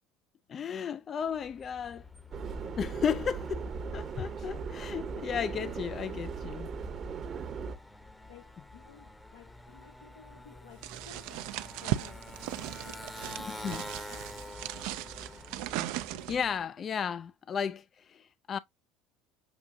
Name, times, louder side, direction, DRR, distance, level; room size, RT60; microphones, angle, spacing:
voice 1, 0.5-2.0 2.8-3.7 3.9-6.7 13.6-13.8 16.3-18.6, left 7 dB, 40° left, 0.3 m, -34 dB
Motorcycle, 1.2-16.6, left 1 dB, 10° left, 0.8 m, -48 dB
Subway metro underground, 2.3-7.8, right 5 dB, 40° right, 0.8 m, -38 dB
voice 2, 7.2-7.6 8.3-11.5 11.8-13.7 14.1-14.7 15.0-15.4, left 8 dB, 85° left, 0.8 m, -56 dB
sound 1, 10.8-16.5, right 14 dB, 70° right, 0.4 m, -37 dB
7.0 x 2.7 x 2.6 m
hypercardioid pair, 75°, 0 cm